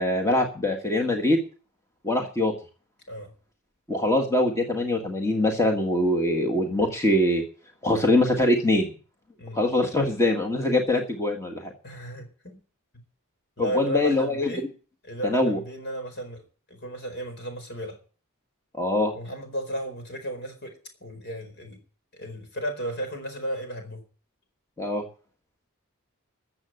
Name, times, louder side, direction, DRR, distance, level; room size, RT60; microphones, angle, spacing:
voice 1, 0.0-1.4 2.0-2.5 3.9-7.4 7.8-8.9 9.5-11.7 13.6-14.5 15.2-15.6 18.7-19.1 24.8-25.0, left 1 dB, 15° left, 1.7 m, -23 dB
voice 2, 11.8-12.6 12.9-13.0 13.6-14.6 15.0-16.4 16.7-18.0 19.1-21.8 22.1-24.0, right 1 dB, 50° left, 4.6 m, -34 dB
14.0 x 7.6 x 7.9 m
head